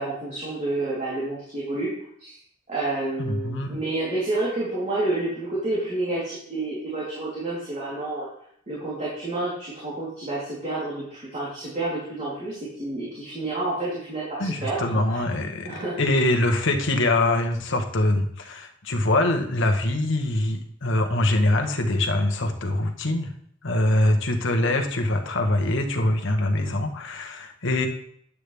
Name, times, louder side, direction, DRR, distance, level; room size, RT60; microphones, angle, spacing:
voice 1, 0.0-1.9 2.2-2.4 2.7-8.3 8.7-15.2 15.6-16.0 24.6-24.8, right 2 dB, 35° right, -8 dB, 3.3 m, -29 dB
voice 2, 3.2-3.8 14.4-23.3 23.6-27.9, left 1 dB, 65° left, 4 dB, 1.3 m, -23 dB
9.8 x 8.5 x 3.5 m, 0.66 s
head